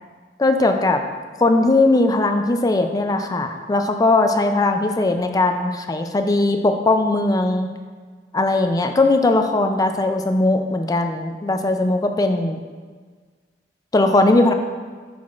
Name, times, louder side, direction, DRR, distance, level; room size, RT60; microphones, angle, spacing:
voice 1, 0.4-1.0 1.4-7.7 8.3-12.6 13.9-14.5, left 2 dB, 20° left, 6 dB, 0.4 m, -19 dB
10.5 x 4.0 x 2.4 m, 1.5 s
head